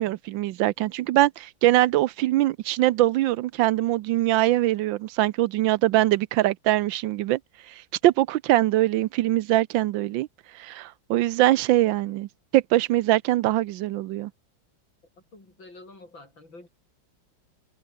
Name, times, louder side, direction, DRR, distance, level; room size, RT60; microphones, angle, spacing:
voice 1, 0.0-7.4 7.7-10.3 10.5-14.3, right 15 dB, 75° right, 1.3 m, -23 dB
voice 2, 15.3-16.7, left 2 dB, 75° left, 8.2 m, -47 dB
omnidirectional pair, 2.1 m